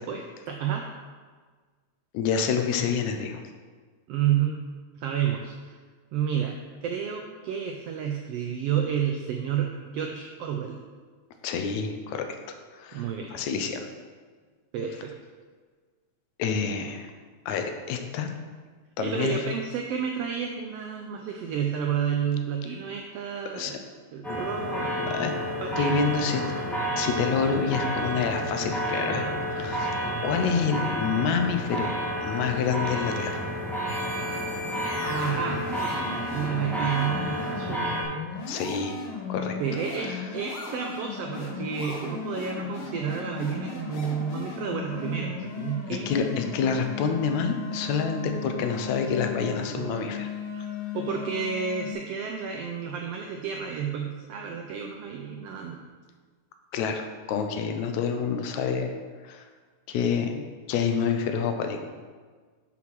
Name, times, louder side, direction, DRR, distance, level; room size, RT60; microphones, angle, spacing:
voice 1, 0.1-0.9 4.1-4.6 5.0-5.8 6.1-6.6 6.8-10.8 12.9-13.3 14.7-15.1 19.0-23.8 24.1-25.3 25.6-26.0 35.0-35.6 36.3-37.9 39.6-46.1 49.7-49.9 50.9-55.8, right 8 dB, 85° right, 3 dB, 1.4 m, -30 dB
voice 2, 2.1-3.4 11.4-12.3 12.8-13.9 16.4-17.1 17.5-18.3 19.0-19.4 23.5-23.8 24.3-24.4 25.1-25.3 25.8-26.4 27.0-30.0 30.2-31.9 32.2-33.5 38.5-39.0 39.3-39.6 40.0-40.2 45.9-50.3 50.6-50.7 56.7-58.9 59.2-59.4 59.9-61.8, left 6 dB, 80° left, 6 dB, 2.0 m, -28 dB
sound 1, 24.2-38.0, equal, ahead, 0.8 m, -30 dB
sound 2, 33.9-51.9, left 4 dB, 60° left, 1.6 m, -36 dB
5.8 x 5.8 x 6.0 m, 1.5 s
omnidirectional pair, 3.4 m